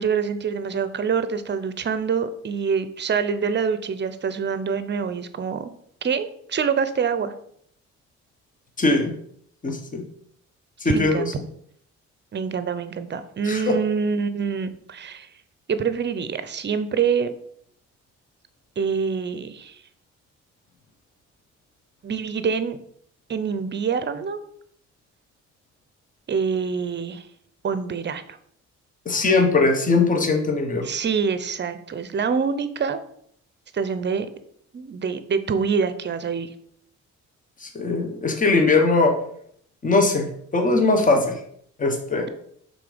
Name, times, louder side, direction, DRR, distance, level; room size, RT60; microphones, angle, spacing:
voice 1, 0.0-5.7 6.0-7.3 10.8-11.3 12.3-15.3 15.7-17.3 18.8-19.8 22.0-22.8 23.3-24.4 26.3-27.3 27.6-28.4 30.8-33.0 33.7-34.3 34.7-36.5, right 6 dB, 35° right, 12 dB, 0.7 m, -25 dB
voice 2, 8.8-9.1 9.6-10.0 10.8-11.2 13.5-13.8 29.0-30.9 37.6-39.1 39.8-41.4 41.8-42.3, left 3 dB, 25° left, 4 dB, 1.2 m, -20 dB
5.8 x 3.8 x 5.1 m, 0.66 s
cardioid pair, 90°, 30 cm